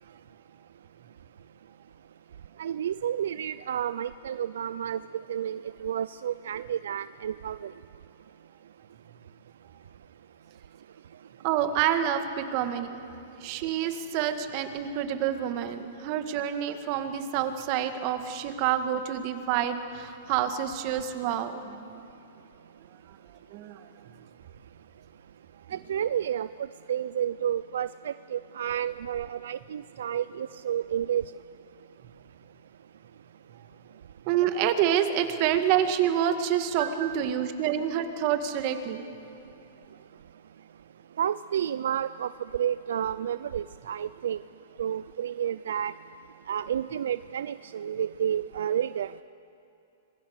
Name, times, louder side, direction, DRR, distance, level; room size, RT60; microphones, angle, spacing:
voice 1, 2.6-7.7 25.7-26.5 26.9-31.2 36.8-37.2 41.2-44.4 44.8-45.9 46.5-49.1, right 9 dB, 75° right, 15 dB, 0.5 m, -30 dB
voice 2, 11.4-13.1 13.4-22.1 23.1-23.2 23.5-23.9 33.5-33.6 34.3-39.0, right 10 dB, 45° right, 8 dB, 2.0 m, -28 dB
26.5 x 22.0 x 6.6 m, 2.8 s
hypercardioid pair, 140°, 0 cm